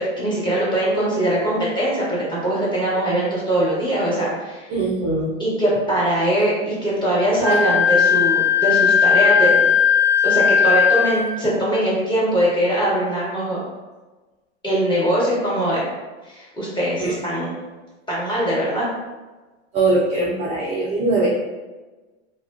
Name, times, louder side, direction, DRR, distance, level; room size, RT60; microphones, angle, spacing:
voice 1, 0.0-4.7 5.4-9.6 10.2-13.6 14.6-15.9 16.2-17.5 18.1-18.9, right 1 dB, 15° left, -8 dB, 1.1 m, -21 dB
voice 2, 4.7-5.3 17.0-17.2 19.7-21.3, right 2 dB, 20° right, -6 dB, 0.4 m, -21 dB
Wind instrument woodwind instrument, 7.4-11.3, left 7 dB, 65° left, 1.0 m, -17 dB
2.3 x 2.3 x 2.4 m, 1.2 s
hypercardioid pair, 105°, 34 cm